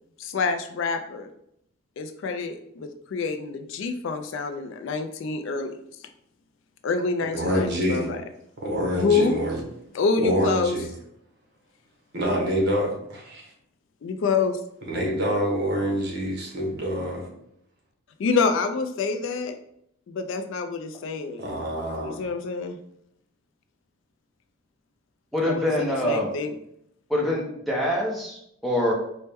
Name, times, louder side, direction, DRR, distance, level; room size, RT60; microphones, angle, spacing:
voice 1, 0.2-1.3 2.0-5.7 6.8-8.2 8.9-9.4 9.9-10.8 14.0-14.6 18.2-19.5 20.1-21.5 22.0-22.8 25.4-26.5, left 4 dB, 60° left, 8 dB, 0.3 m, -27 dB
voice 2, 7.3-8.1 8.6-9.6 10.2-10.9 12.1-13.5 14.9-17.3 21.4-22.2, equal, 50° right, -1 dB, 0.9 m, -26 dB
voice 3, 25.3-26.3 27.1-28.9, left 1 dB, ahead, -4 dB, 0.6 m, -25 dB
4.3 x 2.1 x 3.3 m, 0.75 s
head